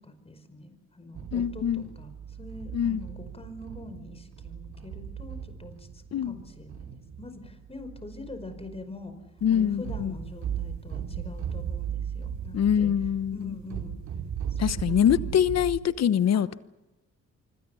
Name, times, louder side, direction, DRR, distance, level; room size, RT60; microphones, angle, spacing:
voice 1, 0.0-9.1 9.5-12.9 13.3-14.0 14.5-15.4 16.3-16.4, left 2 dB, 20° left, 5.1 m, -44 dB
sound 1, 1.1-15.8, right 8 dB, 70° right, 2.8 m, -37 dB
voice 2, 1.3-1.9 2.7-3.0 6.1-6.4 9.4-10.1 12.5-13.5 14.6-16.5, left 9 dB, 60° left, 1.1 m, -24 dB
26.0 x 25.5 x 7.0 m
cardioid pair, 90°, 30 cm